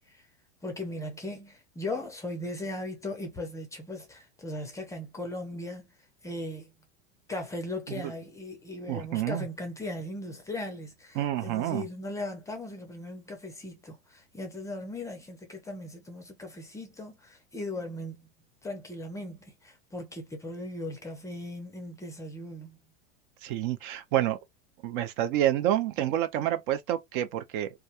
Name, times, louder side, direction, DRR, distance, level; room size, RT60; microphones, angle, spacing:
voice 1, 0.6-5.9 6.2-6.7 7.3-18.3 18.6-22.8, left 1 dB, 10° left, 0.5 m, -38 dB
voice 2, 8.9-9.4 11.2-11.8 23.4-24.4 24.8-27.7, right 12 dB, 50° right, 0.4 m, -28 dB
2.4 x 2.1 x 2.7 m
supercardioid pair, 130°, 33 cm